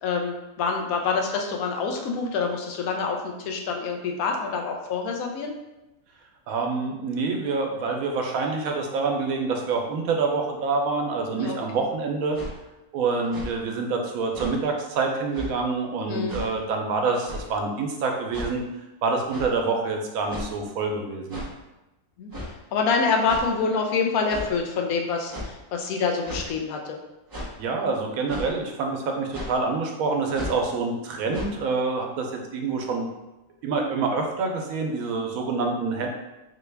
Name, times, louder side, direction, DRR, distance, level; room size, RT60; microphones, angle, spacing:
voice 1, 0.0-5.5 11.4-11.6 16.1-16.4 22.2-22.3 22.7-27.0, left 5 dB, 85° left, 2 dB, 1.1 m, -26 dB
voice 2, 6.5-12.4 12.9-18.6 19.0-21.4 27.6-33.1 33.6-36.1, right 4 dB, 85° right, 2 dB, 1.0 m, -26 dB
sound 1, 12.3-12.5 13.2-13.5 14.3-14.5 15.3-15.5 16.3-16.5 17.2-17.5 18.3-18.5 19.3-19.5 20.3-20.6 21.3-21.5 22.3-22.5 23.3-23.5 24.3-24.5 25.3-25.5 26.2-26.5 27.3-27.5 28.3-28.5 29.3-29.5 30.3-30.6 31.3-31.4, left 1 dB, 25° right, 0.5 m, -35 dB
4.0 x 2.2 x 3.3 m, 1.0 s
omnidirectional pair, 1.5 m